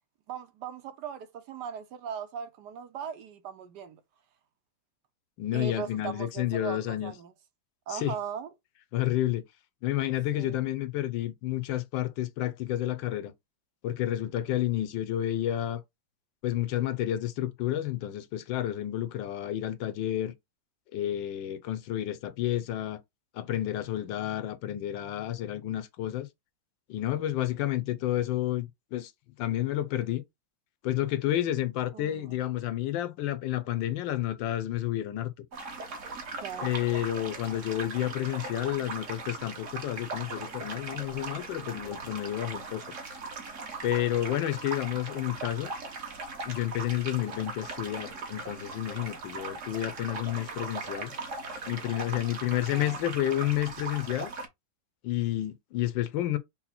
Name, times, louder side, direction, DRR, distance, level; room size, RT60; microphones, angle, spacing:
voice 1, 0.3-4.0 5.5-7.3 7.9-8.5 10.3-10.6 31.9-32.4 36.4-36.7 52.7-53.1, right 8 dB, 70° right, 1.2 m, -39 dB
voice 2, 5.4-7.1 7.9-8.1 8.9-9.4 9.8-13.3 13.8-15.8 16.4-20.3 20.9-23.0 23.3-26.3 26.9-29.1 29.4-30.2 30.8-35.3 36.6-42.9 43.8-45.7 46.4-51.1 51.7-54.3 55.0-56.4, left 13 dB, 80° left, 1.3 m, -30 dB
sound 1, 35.5-54.5, right 3 dB, 45° right, 1.2 m, -39 dB
5.6 x 2.1 x 4.2 m
omnidirectional pair, 2.1 m